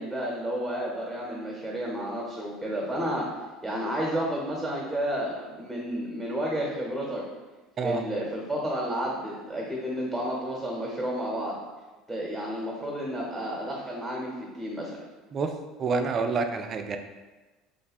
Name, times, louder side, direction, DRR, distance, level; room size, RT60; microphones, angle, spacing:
voice 1, 0.0-3.3 3.6-7.2 7.8-11.6 12.1-15.0, equal, 10° right, -3 dB, 0.9 m, -31 dB
voice 2, 15.8-17.0, right 4 dB, 40° right, 6 dB, 0.4 m, -27 dB
3.1 x 2.1 x 4.2 m, 1.2 s
hypercardioid pair, 75°, 0 cm